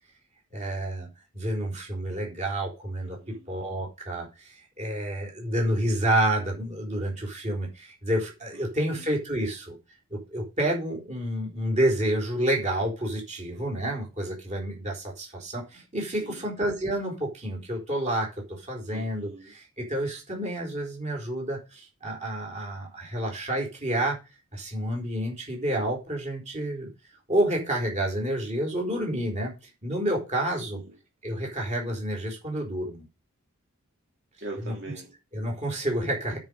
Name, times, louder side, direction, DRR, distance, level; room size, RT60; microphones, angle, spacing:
voice 1, 0.5-1.1 1.3-3.2 3.5-9.8 10.1-24.2 24.5-26.9 27.3-30.8 31.2-33.0 35.3-36.4, right 1 dB, 30° right, 0 dB, 4.4 m, -29 dB
voice 2, 3.0-3.6 8.5-9.0 16.2-16.5 18.9-19.5 30.7-31.0 34.4-35.2, right 2 dB, 55° right, -1 dB, 2.3 m, -43 dB
9.2 x 5.4 x 6.9 m, 0.28 s
head